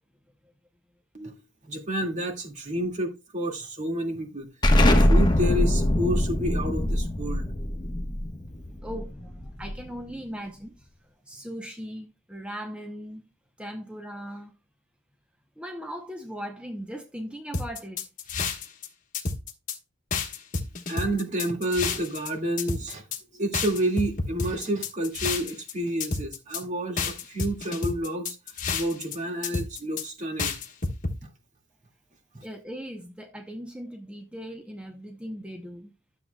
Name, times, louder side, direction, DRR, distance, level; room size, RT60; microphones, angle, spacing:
voice 1, 1.1-4.5 4.8-7.5 20.9-23.0 23.3-28.4 28.7-30.6 31.2-31.3 32.3-32.5, right 1 dB, 40° right, 2.0 m, -30 dB
Explosion, 4.6-10.0, left 1 dB, 20° left, 1.1 m, -23 dB
voice 2, 8.6-10.9 11.2-13.3 13.6-14.5 15.6-18.0 32.4-35.9, equal, 5° right, 0.7 m, -39 dB
sound 1, 17.5-18.9 19.1-19.8 20.1-22.3 22.6-23.2 23.5-25.7 26.0-26.6 27.0-29.2 29.4-30.0 30.4-31.1, left 4 dB, 40° left, 1.3 m, -30 dB
12.5 x 7.3 x 2.3 m
head